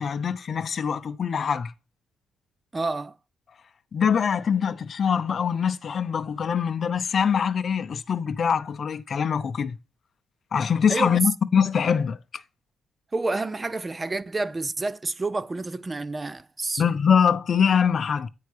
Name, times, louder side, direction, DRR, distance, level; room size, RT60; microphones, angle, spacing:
voice 1, 0.0-1.7 3.9-9.8 10.5-12.2 16.8-18.3, left 7 dB, 50° left, 0.5 m, -23 dB
voice 2, 2.7-3.1 10.9-11.1 13.1-16.8, right 3 dB, 25° right, 0.3 m, -29 dB
9.4 x 4.5 x 3.2 m
cardioid pair, 90°, 0 cm